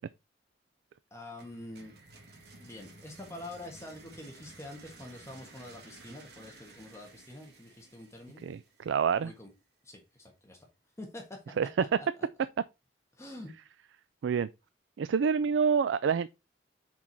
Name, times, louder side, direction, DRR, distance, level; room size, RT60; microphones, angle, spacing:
voice 1, 1.1-1.9 2.6-8.4 9.2-9.5 9.8-10.7 11.0-11.4 12.0-12.1 13.1-13.5, left 1 dB, 15° left, 1.4 m, -46 dB
sound 1, 1.4-9.2, right 2 dB, 65° right, 1.8 m, -54 dB
voice 2, 8.4-9.3 11.6-12.0 14.2-14.5 15.0-16.3, right 6 dB, 90° right, 0.3 m, -27 dB
6.1 x 4.6 x 4.0 m
head